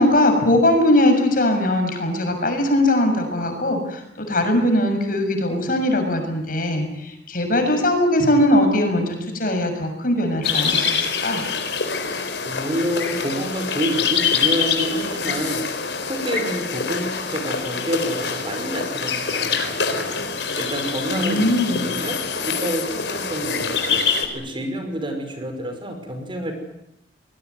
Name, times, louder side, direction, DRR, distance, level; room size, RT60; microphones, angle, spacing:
voice 1, 0.0-11.4 21.1-21.9, left 1 dB, 55° left, 5 dB, 6.8 m, -20 dB
sound 1, 10.4-24.3, left 5 dB, 80° left, 4.3 m, -25 dB
voice 2, 12.4-15.6 16.1-20.2 20.6-22.2 22.5-24.0 24.3-26.5, equal, 30° right, 5 dB, 5.7 m, -28 dB
25.0 x 20.5 x 9.6 m, 0.80 s
head